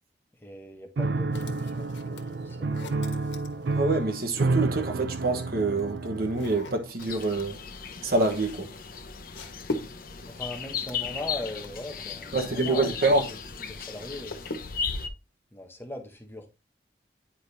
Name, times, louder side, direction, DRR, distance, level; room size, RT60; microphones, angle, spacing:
voice 1, 0.4-2.8 10.3-14.4 15.5-16.5, left 1 dB, 15° left, 1.0 m, -40 dB
Piano, 1.0-6.9, right 3 dB, 75° right, 0.5 m, -30 dB
sound 1, 1.3-4.2 5.2-13.4 13.7-15.0, left 2 dB, 90° left, 1.3 m, -42 dB
voice 2, 3.7-7.6 8.0-8.7 12.3-13.2, right 2 dB, 55° right, 1.1 m, -26 dB
sound 2, 7.0-15.1, left 6 dB, 55° left, 0.9 m, -36 dB
9.9 x 5.0 x 2.7 m
head